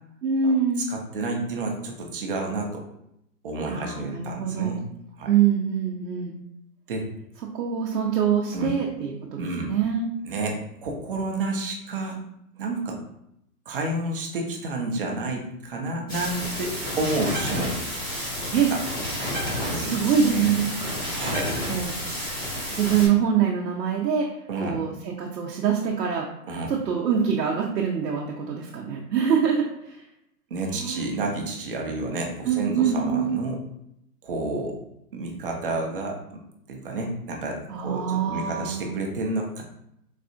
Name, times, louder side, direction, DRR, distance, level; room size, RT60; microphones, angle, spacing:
voice 1, 0.2-0.8 3.7-4.8 5.3-6.4 7.5-10.1 18.5-18.7 19.7-21.0 21.7-21.9 22.7-24.3 24.6-26.3 26.7-30.0 30.7-31.1 32.4-33.4 37.7-39.0, right 7 dB, 85° right, -1 dB, 0.7 m, -24 dB
voice 2, 0.9-2.9 3.4-4.8 5.2-5.3 6.9-7.1 8.5-8.7 9.4-9.7 10.2-12.2 12.6-13.0 13.7-17.8 18.7-18.8 19.6-20.0 20.3-20.5 21.1-21.6 24.5-24.8 26.5-26.7 30.5-33.6 34.2-34.8 35.1-36.4 36.7-39.6, right 2 dB, 35° right, 1 dB, 0.5 m, -30 dB
sound 1, 16.1-23.1, equal, 15° left, 0.5 m, -30 dB
4.0 x 2.3 x 2.5 m, 0.78 s
hypercardioid pair, 150°, 48 cm